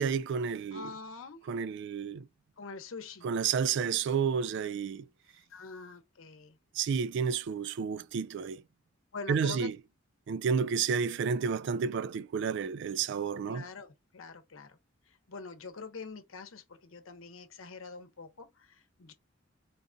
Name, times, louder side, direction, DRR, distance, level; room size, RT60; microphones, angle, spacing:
voice 1, 0.0-0.9 1.5-2.3 3.2-5.1 6.7-8.6 9.3-9.8 10.3-13.7, right 6 dB, 60° right, 0.3 m, -31 dB
voice 2, 0.7-1.4 2.6-3.3 5.5-6.6 9.1-9.7 13.5-14.8 15.1-19.1, left 4 dB, 80° left, 0.8 m, -45 dB
4.0 x 2.6 x 2.2 m
head